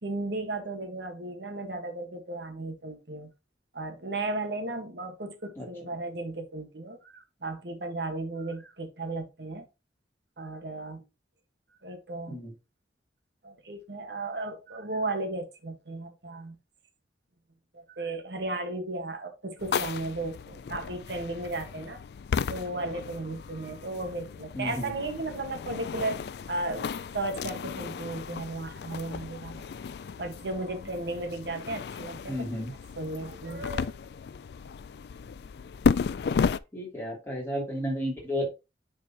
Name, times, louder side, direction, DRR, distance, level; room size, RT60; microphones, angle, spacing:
voice 1, 0.0-3.3 3.7-9.6 10.4-11.0 11.8-12.4 13.4-16.5 17.7-22.0 22.5-29.6 30.2-32.4 33.0-34.0, right 2 dB, 70° right, 1.6 m, -35 dB
voice 2, 5.5-5.9 12.3-12.5 24.5-24.9 32.3-32.7 36.7-38.5, equal, 15° left, 3.1 m, -33 dB
sound 1, 19.6-36.6, left 6 dB, 65° left, 0.3 m, -34 dB
9.7 x 4.3 x 2.9 m
head